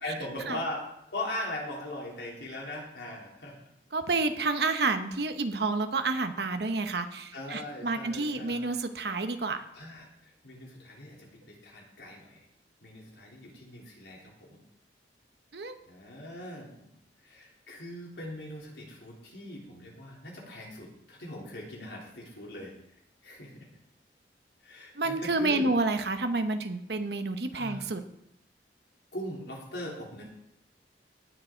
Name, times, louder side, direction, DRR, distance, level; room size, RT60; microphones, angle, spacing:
voice 1, 0.0-0.8 1.1-3.6 4.6-4.7 7.3-8.8 9.7-10.1 10.4-12.4 12.8-14.6 15.9-16.9 17.2-22.7 23.2-23.7 24.6-25.7 27.5-27.9 29.1-30.2, left 1 dB, 75° left, -2 dB, 3.5 m, -40 dB
voice 2, 3.9-9.6 15.5-15.7 25.0-28.0, right 3 dB, 70° right, 7 dB, 1.0 m, -29 dB
18.5 x 6.4 x 4.5 m, 0.79 s
head